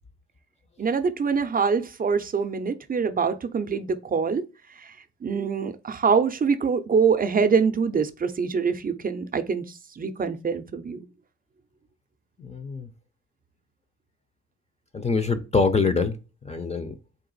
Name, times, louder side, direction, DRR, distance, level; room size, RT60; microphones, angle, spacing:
voice 1, 0.8-4.4 5.2-9.6 10.0-11.1, right 5 dB, 30° right, 0.6 m, -24 dB
voice 2, 12.4-12.9 14.9-16.2 16.4-16.9, left 4 dB, 20° left, 0.6 m, -24 dB
3.9 x 2.5 x 3.9 m
cardioid pair, 90°, 30 cm